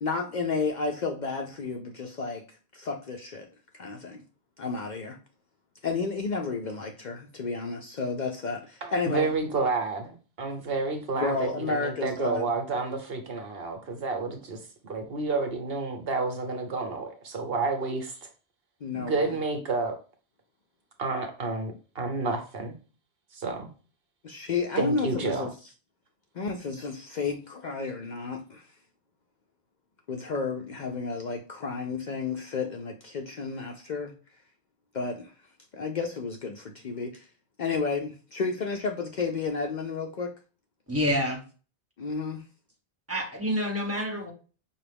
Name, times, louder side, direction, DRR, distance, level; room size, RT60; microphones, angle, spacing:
voice 1, 0.0-2.5 2.7-3.5 3.7-4.2 4.6-5.2 5.8-9.3 11.2-12.5 18.8-19.4 24.2-25.5 26.3-28.7 30.1-34.1 34.9-35.3 35.7-37.3 37.6-40.3 42.0-42.4, left 4 dB, 55° left, 0.6 m, -31 dB
voice 2, 8.8-18.3 18.9-19.9 21.0-22.8 23.3-23.7 24.8-25.5, right 3 dB, 70° right, 1.1 m, -30 dB
voice 3, 40.9-41.4 43.1-44.3, equal, 15° right, 1.2 m, -27 dB
5.4 x 2.4 x 3.4 m
omnidirectional pair, 1.1 m